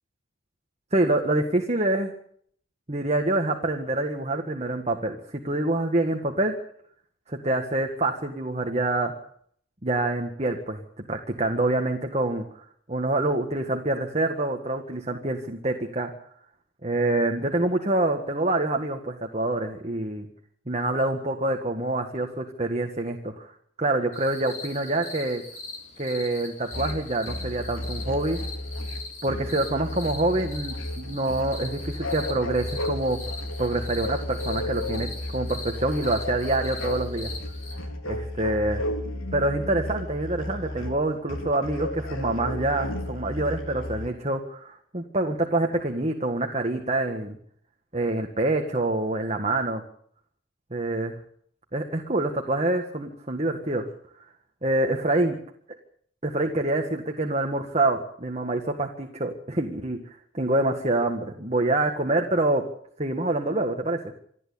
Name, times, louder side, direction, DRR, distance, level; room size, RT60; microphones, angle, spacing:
voice 1, 0.9-2.1 2.9-5.2 5.4-6.5 7.3-9.1 9.8-10.8 11.1-12.4 12.9-16.1 16.8-20.3 20.7-23.5 23.8-25.4 26.0-28.4 29.2-33.2 33.6-37.3 38.0-38.8 39.3-47.4 47.9-49.8 50.7-51.2 51.7-53.8 54.6-55.3 56.2-60.0 60.3-62.6 63.0-64.0, right 2 dB, 30° right, 3 dB, 1.8 m, -26 dB
sound 1, 24.1-37.8, left 3 dB, 35° left, 6.8 m, -41 dB
sound 2, 26.7-44.1, left 1 dB, 85° left, 3.8 m, -33 dB
27.0 x 11.0 x 8.6 m, 0.64 s
head